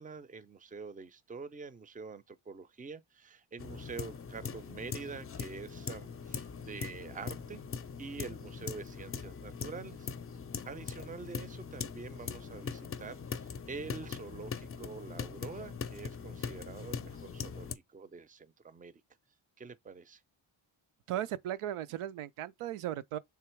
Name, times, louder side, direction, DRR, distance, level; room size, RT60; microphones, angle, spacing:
voice 1, 0.0-10.1 10.6-18.9 19.6-20.2, right 4 dB, 15° right, 0.5 m, -46 dB
sound 1, 3.6-17.8, left 6 dB, 30° left, 0.5 m, -41 dB
voice 2, 21.1-23.2, right 12 dB, 85° right, 0.6 m, -36 dB
3.5 x 2.8 x 4.5 m
cardioid pair, 75°, 49 cm